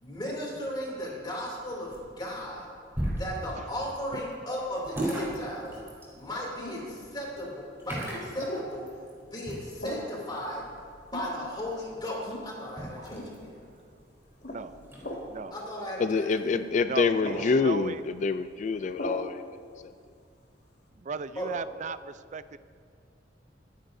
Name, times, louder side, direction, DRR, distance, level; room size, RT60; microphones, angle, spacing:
voice 1, 0.0-2.7 3.1-5.8 6.1-8.8 9.3-10.6 11.1-13.6 15.5-16.6 21.3-21.6, left 1 dB, 25° left, -3 dB, 2.8 m, -36 dB
sound 1, 1.4-15.4, right 1 dB, 15° right, 3.6 m, -40 dB
sound 2, 6.6-6.9 8.4-8.7 9.8-10.1 11.1-11.5 12.2-12.5 13.1-13.3 14.4-14.6 15.0-15.3 16.4-16.6 17.2-17.5 19.0-19.2, left 1 dB, 60° left, 1.9 m, -37 dB
voice 2, 16.0-19.4 19.8-19.9, left 4 dB, 40° left, 11 dB, 0.3 m, -26 dB
voice 3, 16.8-18.0 21.0-22.6, right 5 dB, 40° right, 14 dB, 0.4 m, -36 dB
24.0 x 10.5 x 2.7 m, 2.3 s
head